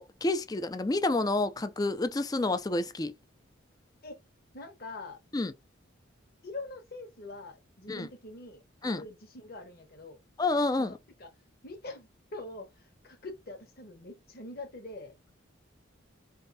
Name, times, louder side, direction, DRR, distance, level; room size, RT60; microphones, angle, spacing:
voice 1, 0.0-3.1 5.3-5.5 7.9-8.1 8.8-9.0 10.4-10.9, left 2 dB, 20° left, 0.4 m, -29 dB
voice 2, 4.5-5.2 6.4-10.2 10.8-10.9 11.2-11.3 11.6-15.1, left 2 dB, 45° left, 1.2 m, -44 dB
4.3 x 3.5 x 2.7 m
head